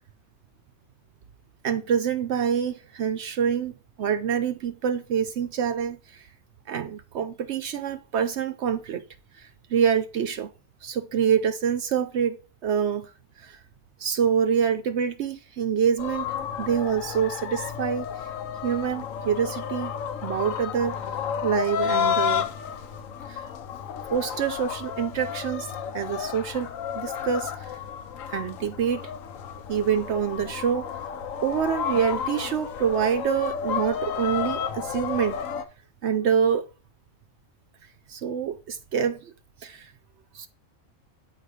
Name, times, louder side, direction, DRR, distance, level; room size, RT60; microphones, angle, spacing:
voice 1, 1.6-6.3 6.7-9.0 9.4-10.5 10.8-12.4 12.6-13.1 13.4-13.6 14.0-18.1 18.6-19.9 20.2-21.0 21.4-22.5 23.3-23.4 24.1-26.7 26.9-27.7 28.3-29.0 29.7-30.9 31.4-35.4 36.0-36.7 38.1-39.3 39.6-39.9 40.3-40.5, right 8 dB, 65° right, 0.8 m, -26 dB
sound 1, 16.0-35.6, left 8 dB, 80° left, 1.1 m, -31 dB
9.2 x 4.1 x 4.8 m
omnidirectional pair, 1.4 m